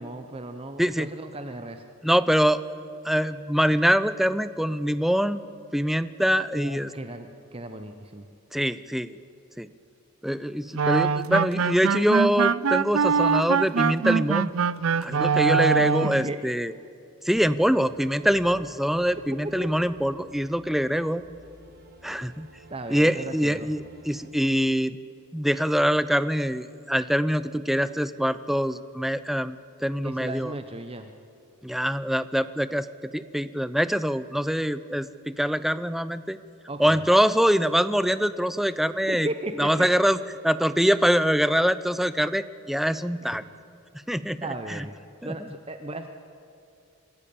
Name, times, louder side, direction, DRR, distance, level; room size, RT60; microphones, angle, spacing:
voice 1, 0.0-1.8 6.5-8.3 15.5-15.6 16.0-16.4 19.6-19.7 22.7-23.7 30.0-31.1 36.7-37.0 39.1-39.9 43.2-43.5 44.4-44.9 45.2-46.1, right 1 dB, 25° right, 8 dB, 0.8 m, -36 dB
voice 2, 2.0-2.6 3.0-5.4 5.7-6.9 8.5-9.1 9.6-9.7 10.2-14.5 15.0-16.7 17.2-21.2 22.0-22.5 22.9-25.0 25.3-29.6 29.8-30.5 31.6-36.4 36.8-39.3 39.6-40.2 40.4-43.4 44.1-44.4 44.7-44.8 45.2-45.3, equal, ahead, 14 dB, 0.5 m, -24 dB
sound 1, 10.7-16.3, right 6 dB, 70° right, 0.5 m, -23 dB
sound 2, 17.3-24.3, right 2 dB, 45° right, 1.9 m, -52 dB
25.5 x 14.0 x 8.6 m, 2.6 s
head